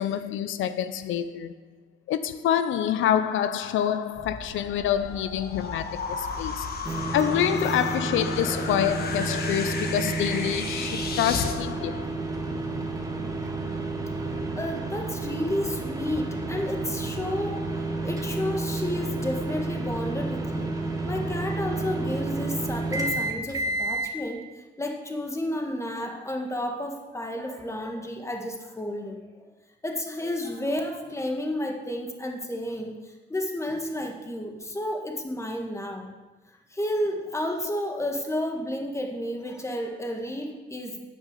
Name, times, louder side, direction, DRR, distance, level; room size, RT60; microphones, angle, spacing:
voice 1, 0.0-1.6 2.1-6.7 7.1-12.2, left 10 dB, 80° left, 0.6 m, -27 dB
sound 1, 4.1-11.6, left 4 dB, 50° left, 1.3 m, -34 dB
sound 2, 6.8-24.1, right 2 dB, 15° right, 1.6 m, -30 dB
voice 2, 8.4-8.7 9.2-9.4 14.6-20.7 21.1-24.4 24.8-29.3 29.8-36.1 36.7-41.0, left 1 dB, 15° left, 1.7 m, -31 dB
9.6 x 6.4 x 6.7 m
cardioid pair, 90°, 20 cm